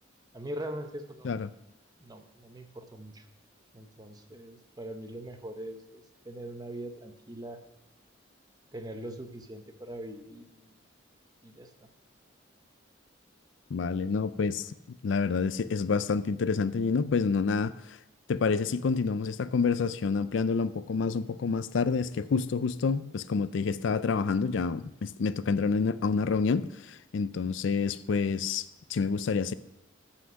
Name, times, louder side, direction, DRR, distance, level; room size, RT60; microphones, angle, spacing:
voice 1, 0.3-1.4 2.0-3.3 3.7-7.6 8.7-10.8 11.4-11.9, right 1 dB, 20° right, 0.9 m, -42 dB
voice 2, 13.7-14.7 15.0-18.0 18.3-28.6 28.9-29.5, left 5 dB, 65° left, 0.4 m, -28 dB
14.0 x 5.8 x 6.3 m
head